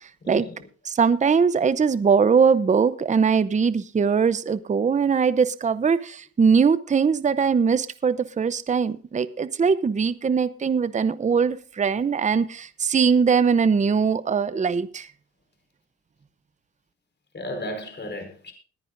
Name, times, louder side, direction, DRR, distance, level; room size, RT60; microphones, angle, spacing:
voice 1, 0.2-0.7 17.3-18.5, left 1 dB, 35° left, 4.7 m, -34 dB
voice 2, 0.9-15.1, right 6 dB, 25° right, 0.7 m, -21 dB
21.5 x 10.0 x 2.6 m
cardioid pair, 90°, 30 cm